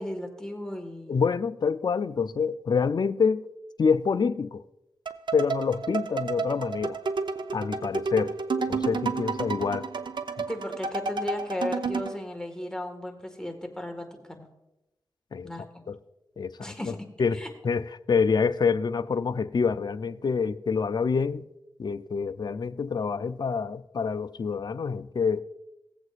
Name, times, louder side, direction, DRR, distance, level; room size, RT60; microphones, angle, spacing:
voice 1, 0.0-1.2 10.5-14.5 15.4-15.8 16.6-17.1 17.3-17.5, left 1 dB, 10° left, 1.7 m, -35 dB
voice 2, 1.1-3.5 3.8-4.6 5.3-7.0 7.5-8.3 8.7-9.9 15.3-15.5 15.9-16.0 16.4-16.7 17.2-21.4 21.8-25.4, left 5 dB, 55° left, 0.5 m, -26 dB
sound 1, 5.1-12.2, right 4 dB, 60° right, 0.7 m, -31 dB
17.5 x 8.0 x 2.5 m
cardioid pair, 55°, 9 cm